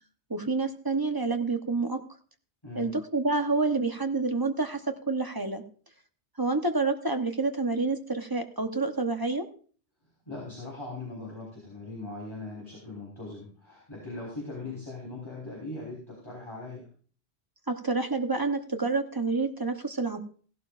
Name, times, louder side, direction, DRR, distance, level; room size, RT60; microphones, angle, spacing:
voice 1, 0.3-2.0 2.8-4.8 5.1-5.6 6.4-9.5 17.7-20.2, right 3 dB, 20° right, 5 dB, 0.9 m, -28 dB
voice 2, 10.3-16.9, left 2 dB, 25° left, -5 dB, 4.3 m, -40 dB
16.5 x 12.0 x 2.5 m, 0.43 s
omnidirectional pair, 1.1 m